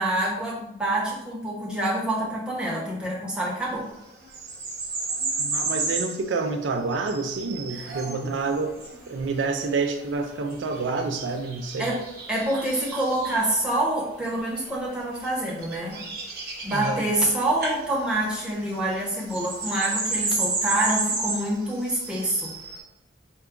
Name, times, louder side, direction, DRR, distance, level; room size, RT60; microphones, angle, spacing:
voice 1, 0.0-3.9 7.7-7.9 11.8-12.0 12.3-16.0 16.6-22.5, right 1 dB, 5° right, -6 dB, 0.9 m, -26 dB
sound 1, 4.2-6.2 6.9-13.5 14.3-14.7 15.2-17.3 17.6-17.8 18.0-22.8, right 3 dB, 50° right, 0.9 m, -32 dB
voice 2, 5.4-8.8 9.1-11.9 16.7-17.0, right 4 dB, 75° right, 5 dB, 0.4 m, -28 dB
4.5 x 2.3 x 3.7 m, 0.88 s
head